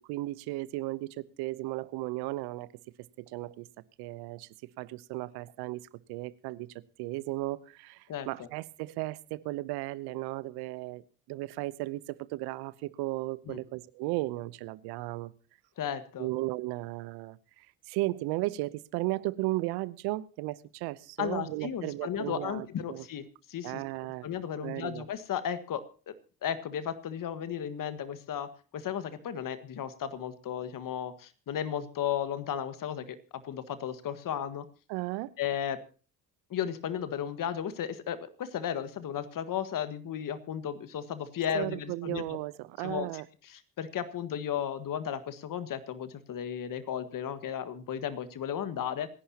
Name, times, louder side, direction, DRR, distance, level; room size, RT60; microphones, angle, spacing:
voice 1, 0.1-2.7 3.2-3.7 4.0-4.5 4.8-5.8 6.1-6.7 7.0-15.3 16.2-23.1 23.6-24.3 24.6-25.0 34.9-35.3 41.5-43.3, right 19 dB, 75° right, 0.8 m, -35 dB
voice 2, 8.1-8.5 13.5-13.6 15.8-16.3 21.2-23.8 24.2-26.1 26.4-34.7 35.4-35.8 36.5-42.4 42.8-49.1, left 9 dB, 55° left, 1.7 m, -35 dB
26.5 x 11.0 x 2.9 m
hypercardioid pair, 55°, 39 cm